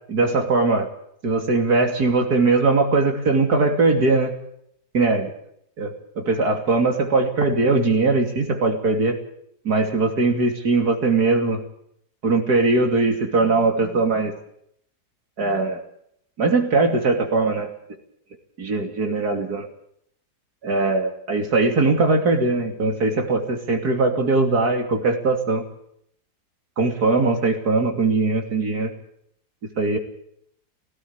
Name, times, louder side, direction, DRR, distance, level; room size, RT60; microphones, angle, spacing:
voice 1, 0.1-0.9 1.2-4.3 4.9-5.3 5.8-9.2 9.7-11.6 12.2-14.3 15.4-15.8 16.4-17.7 18.6-19.6 20.6-25.6 26.8-28.9 29.8-30.0, right 3 dB, 70° right, 4 dB, 3.3 m, -20 dB
17.5 x 17.0 x 9.6 m, 0.70 s
omnidirectional pair, 1.7 m